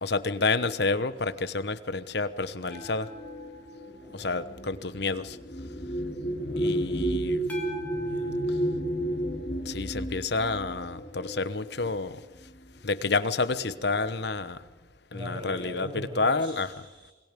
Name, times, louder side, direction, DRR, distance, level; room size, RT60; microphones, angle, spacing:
voice 1, 0.0-3.1 4.1-5.4 6.6-7.4 9.7-12.1 12.8-14.6 15.1-16.7, left 3 dB, 60° left, 13 dB, 1.1 m, -29 dB
sound 1, 2.7-5.5 7.5-10.7 13.5-13.6, left 1 dB, 10° left, 3.4 m, -45 dB
sound 2, 3.1-12.0 12.9-13.1 13.4-14.0, right 1 dB, 30° left, 3.1 m, -32 dB
voice 2, 4.0-4.3 6.4-7.2 7.9-8.4 15.1-17.1, left 1 dB, 25° right, 1 dB, 7.5 m, -42 dB
27.5 x 22.0 x 5.3 m, 1.2 s
head